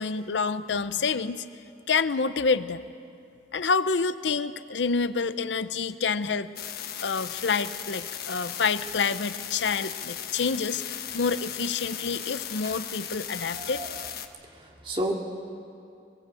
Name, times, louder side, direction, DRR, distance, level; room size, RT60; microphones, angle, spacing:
voice 1, 0.0-1.4 1.9-2.9 3.5-6.5 7.0-13.8, left 5 dB, 80° left, 13 dB, 0.7 m, -28 dB
sound 1, 6.6-14.3, left 9 dB, 55° left, 1.1 m, -37 dB
voice 2, 13.5-14.0 14.4-15.1, right 1 dB, 30° right, 0 dB, 2.4 m, -33 dB
21.5 x 21.5 x 8.4 m, 2.5 s
head